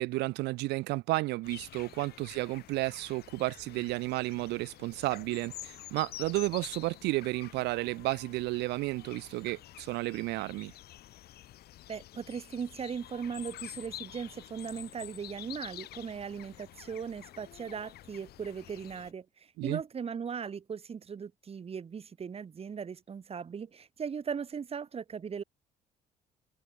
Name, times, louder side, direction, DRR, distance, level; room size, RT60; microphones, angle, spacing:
voice 1, 0.0-10.7 19.6-19.8, right 21 dB, 85° right, 0.5 m, -32 dB
sound 1, 1.4-19.1, left 14 dB, 70° left, 2.3 m, -49 dB
voice 2, 11.9-25.4, right 6 dB, 35° right, 3.3 m, -38 dB
cardioid pair, 110°, 17 cm